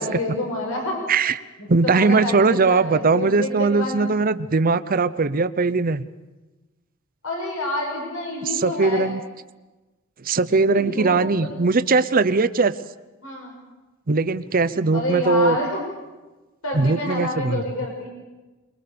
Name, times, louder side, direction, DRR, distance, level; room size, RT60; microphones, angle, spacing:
voice 1, 0.0-1.0 1.6-4.1 7.2-9.1 10.7-11.5 13.2-13.5 14.9-15.8 16.6-18.1, left 2 dB, 75° left, 0 dB, 6.4 m, -28 dB
voice 2, 1.7-6.0 8.4-9.2 10.2-12.8 14.1-15.6 16.7-17.6, right 4 dB, 40° right, 13 dB, 0.7 m, -20 dB
23.5 x 22.5 x 6.8 m, 1.2 s
head